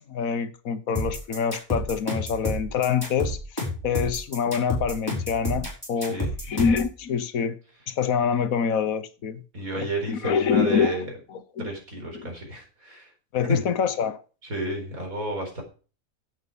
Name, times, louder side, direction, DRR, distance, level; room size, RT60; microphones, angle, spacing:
voice 1, 0.1-6.2 6.4-7.6 7.9-9.4 9.8-11.0 11.6-11.7 12.1-12.3 13.3-14.2, left 6 dB, 75° left, 1.4 m, -26 dB
sound 1, 1.0-6.9, left 1 dB, 15° left, 5.4 m, -29 dB
voice 2, 6.0-6.6 9.5-11.1 11.6-13.1 13.5-13.6 14.5-15.6, equal, 80° right, 4.9 m, -31 dB
11.0 x 8.2 x 5.2 m
omnidirectional pair, 1.5 m